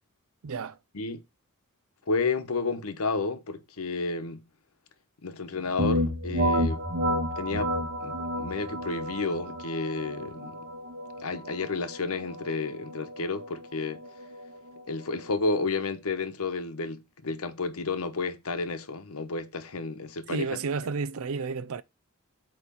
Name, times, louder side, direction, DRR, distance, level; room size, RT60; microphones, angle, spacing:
voice 1, 0.4-0.8 20.3-21.8, right 4 dB, 70° right, 0.5 m, -31 dB
voice 2, 2.1-4.4 5.2-6.8 7.4-7.7 8.0-10.6 11.2-14.0 14.9-20.5, left 3 dB, 75° left, 1.0 m, -31 dB
sound 1, 5.8-15.4, equal, 50° right, 1.3 m, -31 dB
8.4 x 3.2 x 5.5 m
head